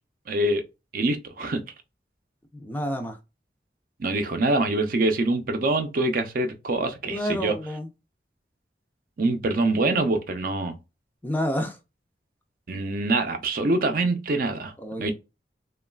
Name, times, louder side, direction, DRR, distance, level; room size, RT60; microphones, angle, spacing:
voice 1, 0.3-0.6 0.9-1.6 4.0-7.5 9.2-10.8 12.7-14.7 15.0-15.1, right 2 dB, 50° right, 0.5 m, -24 dB
voice 2, 2.5-3.2 7.1-7.9 11.2-11.8 14.8-15.1, equal, 10° left, 0.4 m, -29 dB
3.0 x 2.3 x 2.2 m
head